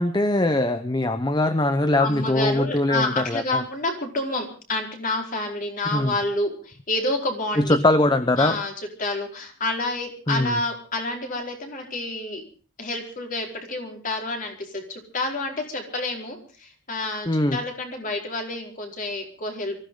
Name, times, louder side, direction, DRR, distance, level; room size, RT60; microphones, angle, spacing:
voice 1, 0.0-3.6 5.9-6.1 7.6-8.6 10.3-10.6 17.3-17.6, left 1 dB, 20° left, 11 dB, 0.8 m, -22 dB
voice 2, 1.9-7.8 8.4-12.4 12.8-19.8, left 2 dB, 40° left, 2 dB, 4.6 m, -29 dB
24.0 x 15.5 x 3.8 m, 0.38 s
head